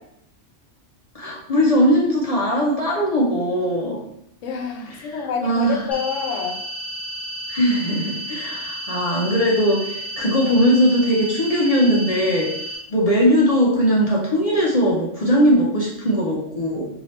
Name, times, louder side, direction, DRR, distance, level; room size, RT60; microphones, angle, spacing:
voice 1, 1.1-4.0 5.0-5.8 7.5-12.5 12.9-16.9, equal, 45° left, -4 dB, 0.5 m, -19 dB
voice 2, 4.4-6.6, left 6 dB, 85° left, 3 dB, 0.9 m, -27 dB
sound 1, 5.9-12.8, right 1 dB, 15° left, 0.8 m, -32 dB
3.1 x 2.7 x 2.8 m, 0.77 s
omnidirectional pair, 1.2 m